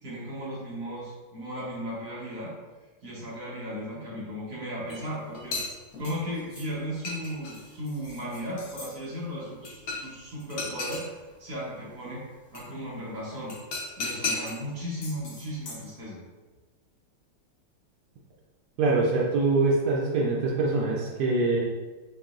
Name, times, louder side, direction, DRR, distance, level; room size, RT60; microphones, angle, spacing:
voice 1, 0.0-2.5 3.0-5.6 6.0-13.5 14.0-16.2, equal, 55° right, -6 dB, 1.0 m, -36 dB
sound 1, 4.9-5.0 5.3-6.7 7.0-8.9 9.6-10.1 10.4-11.0 12.5-12.6 13.5-14.6 15.0-15.9, left 3 dB, 60° left, 1.1 m, -35 dB
voice 2, 18.8-21.6, right 3 dB, 85° right, -3 dB, 0.9 m, -24 dB
4.8 x 2.7 x 2.4 m, 1.3 s
omnidirectional pair, 2.4 m